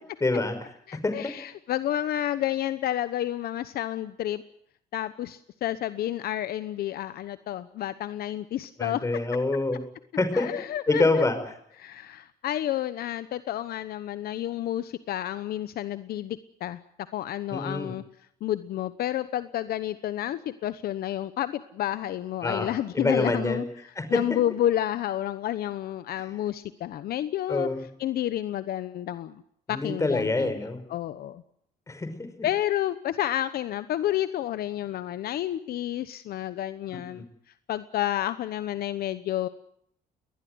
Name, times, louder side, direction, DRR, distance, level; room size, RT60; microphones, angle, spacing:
voice 1, 0.2-0.6 1.0-1.3 8.8-9.8 10.2-10.5 10.9-11.4 17.5-17.9 22.4-22.7 22.9-23.6 24.0-24.2 27.5-27.9 29.7-30.8 31.9-32.5 37.1-37.2, left 2 dB, 20° left, 9 dB, 5.3 m, -26 dB
voice 2, 0.9-4.4 4.9-9.0 10.3-11.2 11.8-16.8 17.1-18.0 18.4-23.6 24.1-27.7 28.0-29.4 29.7-30.6 30.9-31.4 32.4-37.2 37.7-39.5, left 12 dB, 65° left, 13 dB, 1.0 m, -30 dB
22.0 x 20.0 x 7.9 m, 0.69 s
cardioid pair, 110°, 17 cm